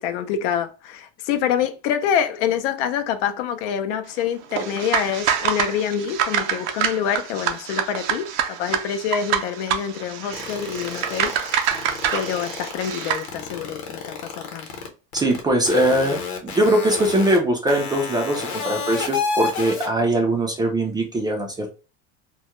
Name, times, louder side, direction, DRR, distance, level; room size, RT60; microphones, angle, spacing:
voice 1, 0.0-11.4 12.1-14.7, left 8 dB, 80° left, 0.5 m, -26 dB
sound 1, 4.5-13.3, right 9 dB, 75° right, 0.6 m, -26 dB
sound 2, 10.3-14.9 15.1-15.4 15.7-17.4 17.7-19.9, left 5 dB, 50° left, 0.9 m, -29 dB
voice 2, 15.1-21.7, right 1 dB, 15° right, 0.3 m, -21 dB
2.2 x 2.1 x 2.9 m
supercardioid pair, 130°, 35 cm